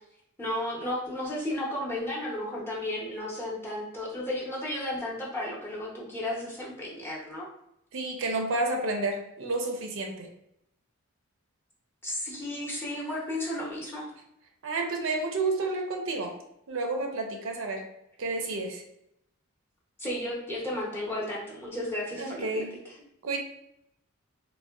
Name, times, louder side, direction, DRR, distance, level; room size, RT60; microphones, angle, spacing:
voice 1, 0.4-7.5 12.0-14.1 20.0-22.9, left 1 dB, 10° left, -4 dB, 0.6 m, -33 dB
voice 2, 7.9-10.3 14.6-16.4 16.7-17.9 18.2-18.8 22.2-22.7 23.2-23.4, right 2 dB, 60° right, 3 dB, 0.5 m, -30 dB
3.5 x 2.1 x 2.2 m, 0.78 s
head